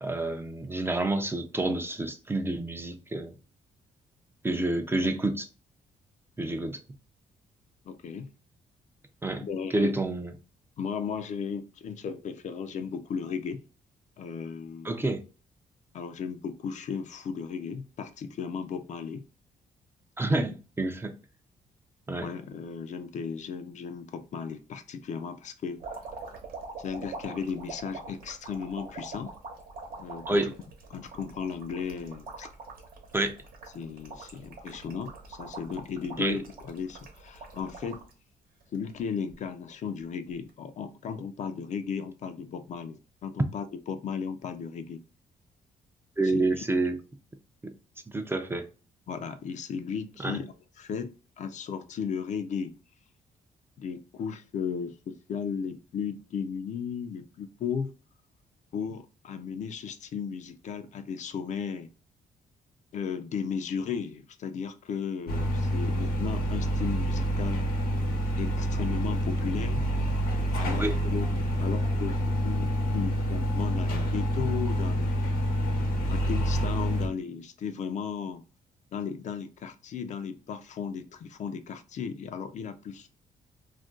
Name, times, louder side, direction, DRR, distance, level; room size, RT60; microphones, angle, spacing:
voice 1, 0.0-3.3 4.4-5.5 6.4-6.8 9.2-9.4 9.7-10.3 14.8-15.2 20.2-21.1 22.1-22.3 30.3-30.5 33.1-33.4 36.2-36.4 46.2-47.0 48.1-48.7 50.2-50.4 70.8-71.0, right 2 dB, 15° right, 0.4 m, -28 dB
voice 2, 7.9-8.3 9.4-9.9 10.8-13.6 14.2-14.9 15.9-19.3 20.3-20.6 22.2-25.8 26.8-29.3 30.0-30.5 30.9-32.5 33.7-38.1 38.7-45.0 46.2-46.6 49.1-52.8 53.8-57.9 58.7-61.9 62.9-67.6 68.4-69.9 70.6-75.2 76.1-78.4 78.9-83.1, left 6 dB, 55° left, 0.4 m, -35 dB
sound 1, 25.8-38.1 38.6-39.3 40.3-40.5, right 3 dB, 75° right, 0.9 m, -44 dB
sound 2, 65.3-77.1, equal, 90° left, 0.9 m, -27 dB
2.4 x 2.2 x 3.6 m
cardioid pair, 105°, 15 cm